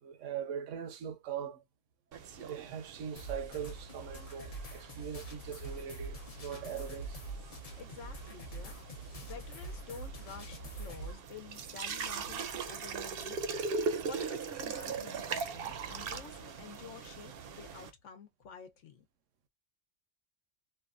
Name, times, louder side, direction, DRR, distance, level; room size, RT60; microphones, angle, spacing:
voice 1, 0.0-1.6 2.4-7.2, right 8 dB, 80° right, 1.0 m, -41 dB
sound 1, 2.1-17.9, right 5 dB, 60° right, 0.7 m, -41 dB
sound 2, 3.1-11.1, right 2 dB, 35° left, 0.7 m, -44 dB
voice 2, 7.7-8.8 9.2-13.5 14.0-19.1, left 6 dB, 75° left, 1.1 m, -50 dB
3.1 x 2.2 x 2.4 m
omnidirectional pair, 1.3 m